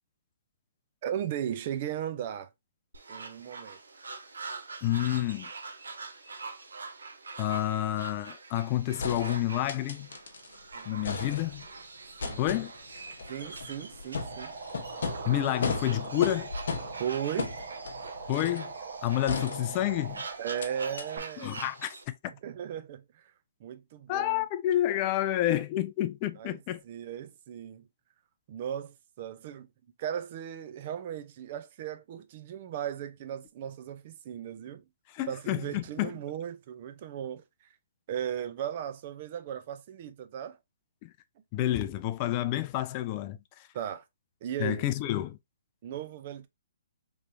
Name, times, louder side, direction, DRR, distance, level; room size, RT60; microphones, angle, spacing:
voice 1, 1.0-2.5 3.1-3.8 10.7-11.2 12.2-12.5 13.3-14.5 17.0-17.5 20.4-21.6 22.3-23.2 23.6-24.4 26.4-26.6 26.8-27.8 28.5-29.7 30.0-34.8 35.3-37.4 38.1-40.6 43.7-44.0 44.4-44.8 45.8-46.5, right 9 dB, 45° right, 0.5 m, -36 dB
sound 1, 2.9-22.0, right 4 dB, 85° right, 0.7 m, -45 dB
voice 2, 4.8-5.5 7.4-10.1 10.9-11.7 12.4-12.7 15.2-16.5 18.3-18.7 19.0-20.2 21.4-22.0 24.1-26.8 35.1-36.1 41.0-41.1 41.5-43.7 44.6-45.4, left 13 dB, 35° left, 0.4 m, -29 dB
sound 2, 9.0-10.6 10.8-11.8 12.2-18.7 19.3-20.1 20.6-20.7 21.0-21.1, left 4 dB, 65° left, 0.8 m, -37 dB
sound 3, 14.2-21.2, right 5 dB, 60° right, 0.9 m, -42 dB
3.2 x 3.1 x 2.6 m
hypercardioid pair, 140°, 0 cm